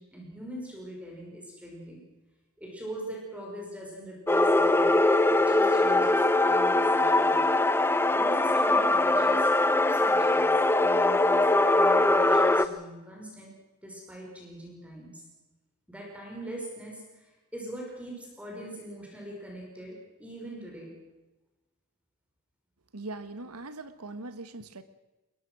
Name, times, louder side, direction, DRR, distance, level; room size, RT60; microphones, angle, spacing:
voice 1, 0.0-2.0 2.6-7.4 8.1-13.5 13.8-15.2 15.9-20.9, right 1 dB, 5° right, -1 dB, 5.4 m, -42 dB
sound 1, 4.3-12.6, left 2 dB, 10° left, 0.7 m, -22 dB
voice 2, 22.9-24.8, right 2 dB, 80° right, 11 dB, 1.5 m, -40 dB
22.0 x 21.5 x 6.3 m, 1.1 s
head